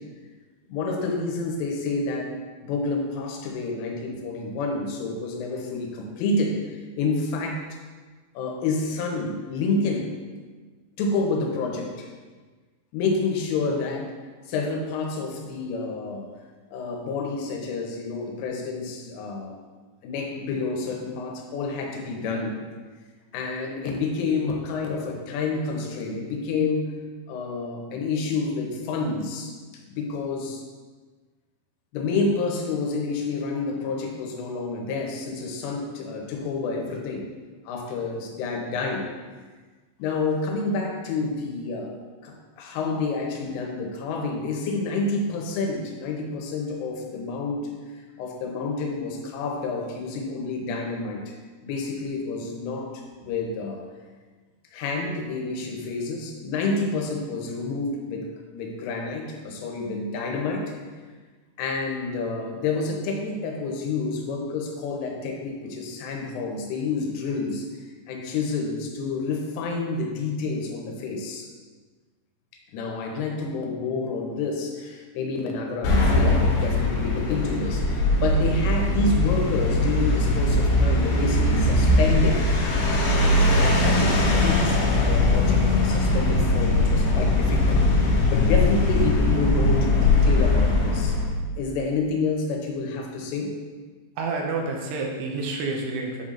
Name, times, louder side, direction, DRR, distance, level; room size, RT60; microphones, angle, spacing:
voice 1, 0.7-2.4 2.6-7.6 8.4-10.1 11.0-12.1 12.9-14.1 14.5-16.3 16.7-19.6 20.0-22.6 23.3-26.9 27.3-30.6 31.9-37.3 37.7-39.1 40.0-42.0 42.2-47.7 48.2-51.3 51.6-53.8 54.7-60.7 61.6-67.7 68.1-71.5 72.7-82.4 83.1-91.2 91.6-93.5, left 3 dB, 85° left, 1 dB, 3.4 m, -29 dB
sound 1, 75.8-91.3, left 2 dB, 70° left, 3.2 m, -21 dB
voice 2, 94.2-96.2, right 3 dB, 85° right, 1 dB, 3.1 m, -29 dB
8.6 x 5.5 x 2.5 m, 1.4 s
omnidirectional pair, 5.6 m